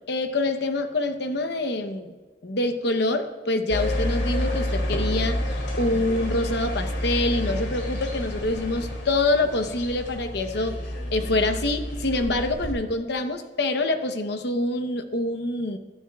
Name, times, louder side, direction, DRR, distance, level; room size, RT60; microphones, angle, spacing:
voice 1, 0.1-2.1 2.4-5.4 5.8-10.8 11.1-15.8, left 2 dB, 65° left, 8 dB, 1.0 m, -26 dB
sound 1, 3.7-12.7, left 1 dB, 85° left, 2.9 m, -29 dB
23.0 x 11.5 x 2.4 m, 1.3 s
head